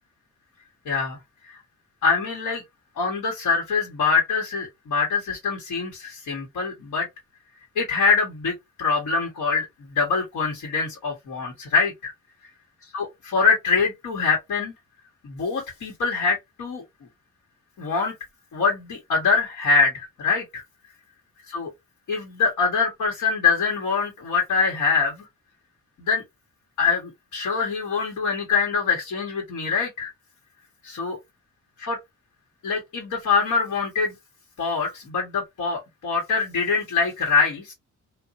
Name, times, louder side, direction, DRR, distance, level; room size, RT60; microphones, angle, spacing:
voice 1, 0.8-1.2 2.0-2.6 3.0-7.1 7.7-12.1 12.9-14.7 15.2-16.8 17.8-18.1 18.5-20.6 21.5-21.7 22.1-25.3 26.0-26.2 26.8-30.1 30.8-31.2 31.8-32.0 32.6-34.1 34.6-37.7, left 5 dB, 75° left, 1.4 m, -24 dB
2.8 x 2.5 x 2.5 m
wide cardioid pair, 150°, 30 cm